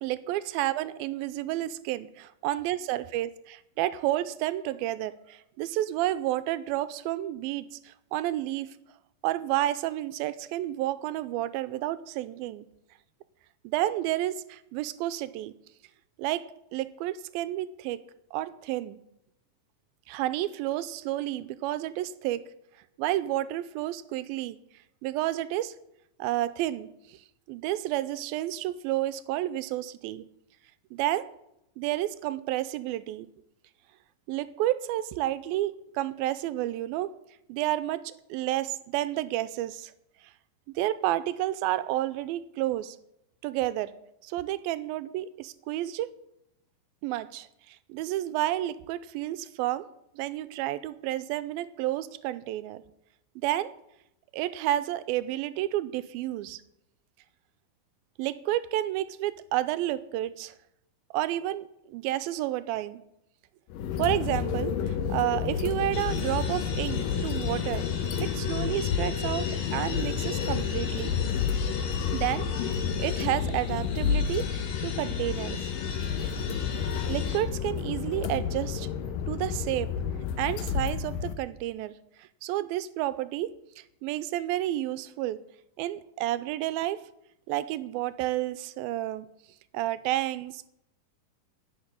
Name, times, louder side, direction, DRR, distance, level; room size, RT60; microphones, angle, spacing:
voice 1, 0.0-2.1 2.4-8.8 9.2-12.7 13.6-15.5 16.2-16.4 16.7-18.0 18.3-19.0 20.1-22.5 23.0-24.6 25.0-25.7 26.2-27.2 27.5-30.2 31.0-31.2 31.8-33.3 34.3-37.1 37.5-38.0 38.3-39.9 40.8-43.0 43.4-43.9 44.2-46.1 47.0-49.9 50.2-52.8 53.4-53.7 54.3-56.6 58.2-60.6 61.1-63.0 64.0-67.9 68.2-71.1 72.1-75.6 76.2-76.3 77.1-78.9 79.3-79.9 80.4-85.4 85.8-87.0 87.5-89.3 89.7-90.7, right 14 dB, 90° right, 14 dB, 2.4 m, -30 dB
sound 1, 63.7-81.3, left 7 dB, 75° left, 2.5 m, -30 dB
sound 2, 65.9-77.4, left 5 dB, 55° left, 2.8 m, -41 dB
12.0 x 6.7 x 9.7 m, 0.80 s
omnidirectional pair, 4.2 m